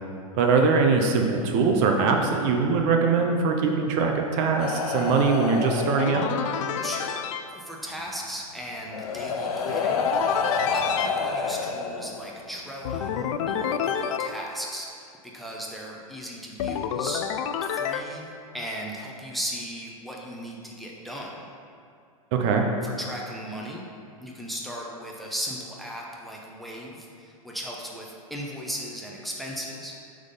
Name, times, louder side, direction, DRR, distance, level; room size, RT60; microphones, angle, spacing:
voice 1, 0.3-6.3 22.3-22.7, right 4 dB, 40° right, 3 dB, 0.6 m, -22 dB
sound 1, 4.6-6.7 8.1-8.2 8.9-12.5 13.6-13.7, left 4 dB, 85° left, 0.8 m, -29 dB
sound 2, 6.0-7.4 9.6-11.1 12.8-14.3 16.6-18.0, left 8 dB, 60° left, 0.4 m, -28 dB
voice 2, 6.7-7.2 7.5-17.2 17.6-21.3 22.8-23.8 24.2-30.0, equal, ahead, -2 dB, 0.7 m, -37 dB
6.2 x 3.6 x 5.4 m, 2.3 s
hypercardioid pair, 120°, 19 cm